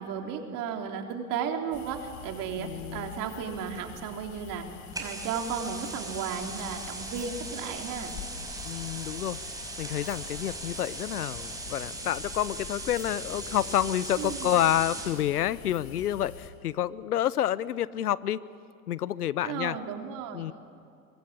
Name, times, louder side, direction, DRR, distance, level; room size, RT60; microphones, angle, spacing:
voice 1, 0.0-4.7 5.0-8.1 14.2-14.6 19.4-20.5, right 7 dB, 45° right, 4 dB, 3.6 m, -34 dB
sound 1, 1.7-16.5, left 7 dB, 40° left, 3.1 m, -46 dB
voice 2, 2.6-3.2 8.6-9.4 9.8-18.4 18.9-19.8 20.3-20.5, left 11 dB, 90° left, 19 dB, 0.9 m, -29 dB
sound 2, 4.9-15.2, right 2 dB, 10° right, 5.4 m, -39 dB
24.5 x 23.5 x 8.8 m, 2.4 s
hypercardioid pair, 110°, 44 cm